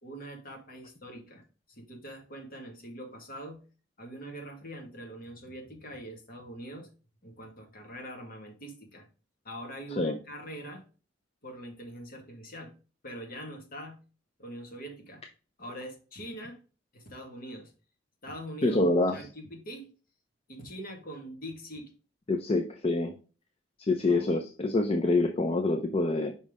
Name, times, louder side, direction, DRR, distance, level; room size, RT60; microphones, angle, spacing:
voice 1, 0.0-3.6 4.0-6.9 7.2-9.1 9.4-10.8 11.4-12.7 13.0-14.0 14.4-15.2 15.6-16.6 16.9-17.7 18.2-18.8 19.1-19.9 20.5-21.9 24.1-24.3, equal, 50° left, 3 dB, 1.8 m, -43 dB
voice 2, 18.6-19.2 22.3-23.1 23.8-26.3, left 2 dB, 30° left, 5 dB, 0.6 m, -26 dB
5.4 x 5.3 x 3.6 m, 0.36 s
head